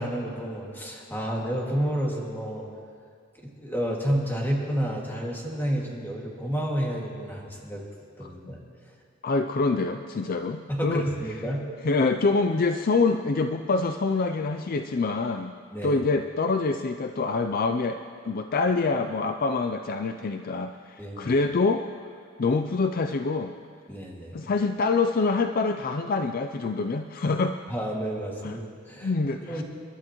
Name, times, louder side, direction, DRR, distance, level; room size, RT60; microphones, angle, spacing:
voice 1, 0.0-2.6 3.6-7.8 8.2-8.6 10.7-11.6 15.7-16.0 21.0-21.3 23.9-24.5 27.7-29.1 29.4-29.6, equal, 10° left, -2 dB, 2.1 m, -30 dB
voice 2, 8.2-8.5 9.2-11.0 11.8-15.5 15.8-18.0 18.2-21.9 22.4-23.5 24.3-27.6 28.4-28.6 29.0-29.6, left 3 dB, 45° left, 7 dB, 0.4 m, -26 dB
28.5 x 12.0 x 3.0 m, 2.2 s
head